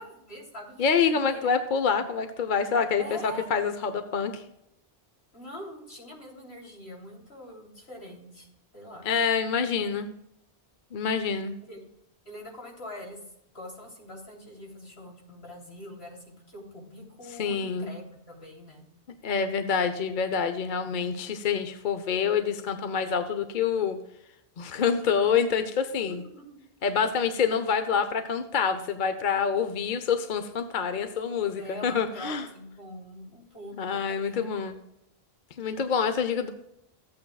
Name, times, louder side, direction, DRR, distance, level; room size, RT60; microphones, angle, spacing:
voice 1, 0.0-1.5 1.9-2.0 3.0-3.5 5.3-8.5 8.7-9.1 11.6-11.8 12.2-13.2 13.5-18.8 24.9-25.4 31.5-34.5, left 1 dB, 80° left, -3 dB, 3.4 m, -43 dB
voice 2, 0.8-4.4 9.0-10.1 10.9-11.5 17.4-17.9 19.2-24.0 24.6-26.2 26.8-32.5 33.8-34.8 35.6-36.5, left 6 dB, 55° left, 8 dB, 0.8 m, -27 dB
14.5 x 8.6 x 2.3 m, 0.81 s
omnidirectional pair, 1.0 m